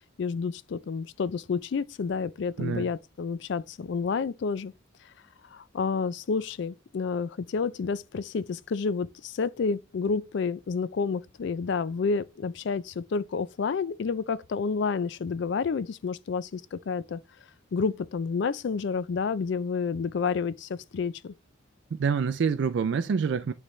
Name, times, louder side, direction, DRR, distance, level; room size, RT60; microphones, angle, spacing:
voice 1, 0.2-4.7 5.5-17.2 17.7-21.3, left 5 dB, 55° left, 0.3 m, -30 dB
voice 2, 21.9-23.5, right 6 dB, 60° right, 0.3 m, -26 dB
9.9 x 3.3 x 3.1 m
head